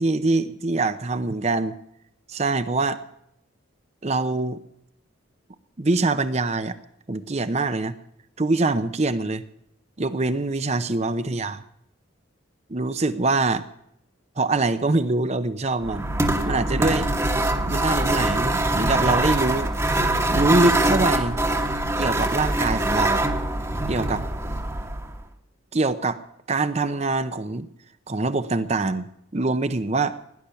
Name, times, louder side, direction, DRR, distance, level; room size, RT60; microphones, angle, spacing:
voice 1, 0.0-1.7 2.3-3.0 4.0-4.6 5.8-6.8 7.1-7.9 8.4-9.4 10.0-11.6 12.7-13.6 14.4-16.1 16.4-17.1 17.7-19.7 20.3-21.4 22.0-23.2 23.9-24.2 25.7-26.2 26.5-27.7 28.1-29.1 29.3-30.2, right 2 dB, 30° right, 11 dB, 0.7 m, -24 dB
sound 1, 15.8-25.2, right 1 dB, 15° right, 1.2 m, -23 dB
17.0 x 10.5 x 6.9 m, 0.77 s
head